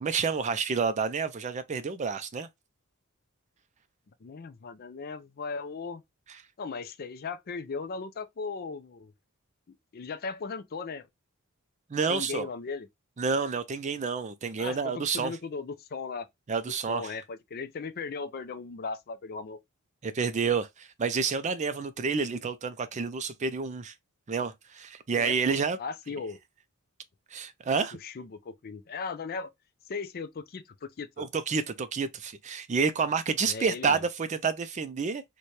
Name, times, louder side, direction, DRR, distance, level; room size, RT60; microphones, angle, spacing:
voice 1, 0.0-2.5 11.9-12.5 13.2-15.3 16.5-17.1 20.0-23.9 24.3-25.8 27.3-28.0 31.2-35.2, right 5 dB, 30° right, 0.4 m, -29 dB
voice 2, 4.2-6.0 6.6-9.1 9.7-11.1 12.1-12.9 14.6-16.3 16.9-19.6 25.1-26.4 28.0-29.5 29.9-31.3 33.4-34.0, left 4 dB, 45° left, 0.4 m, -37 dB
4.1 x 2.2 x 3.1 m
head